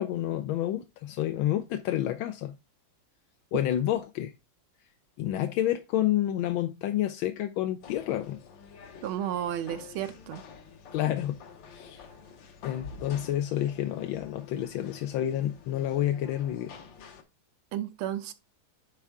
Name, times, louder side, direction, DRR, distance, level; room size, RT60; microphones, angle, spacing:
voice 1, 0.0-2.5 3.5-4.3 5.2-8.4 10.9-11.4 11.7-12.1 12.6-16.8, left 12 dB, 85° left, 1.4 m, -29 dB
sound 1, 7.8-17.2, left 5 dB, 70° left, 1.6 m, -48 dB
voice 2, 9.0-10.4 17.7-18.3, right 11 dB, 85° right, 1.5 m, -32 dB
9.9 x 3.6 x 3.5 m
omnidirectional pair, 2.2 m